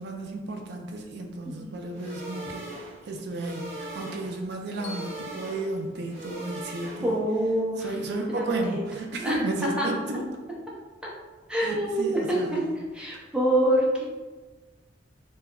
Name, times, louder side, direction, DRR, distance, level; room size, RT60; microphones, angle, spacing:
voice 1, 0.0-2.7 3.1-7.2 7.8-10.3 11.6-12.6, right 2 dB, 65° right, 2 dB, 0.4 m, -33 dB
sound 1, 1.9-7.3, right 1 dB, 40° right, 0.9 m, -40 dB
Bell, 4.8-7.0, left 2 dB, 80° left, 0.5 m, -49 dB
voice 2, 6.8-8.0 8.3-8.8 9.2-9.9 11.5-12.6 12.9-14.0, right 1 dB, 5° right, -4 dB, 0.6 m, -26 dB
2.2 x 2.0 x 3.6 m, 1.3 s
head